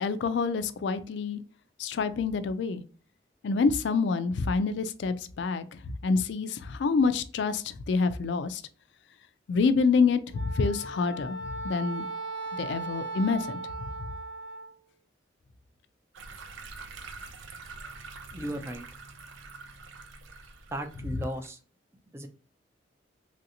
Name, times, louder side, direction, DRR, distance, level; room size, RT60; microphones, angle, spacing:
voice 1, 0.0-1.4 1.8-2.8 3.4-8.6 9.5-11.4 11.6-12.1 12.6-13.6, left 4 dB, 65° left, 12 dB, 0.3 m, -27 dB
Wind instrument woodwind instrument, 10.3-14.7, right 2 dB, 20° left, 0.7 m, -37 dB
sound 1, 16.1-21.5, right 4 dB, 80° right, 0.5 m, -45 dB
voice 2, 18.3-18.9 20.7-21.6 22.1-22.3, right 1 dB, 15° right, 6 dB, 0.4 m, -35 dB
3.2 x 2.6 x 2.7 m, 0.39 s
head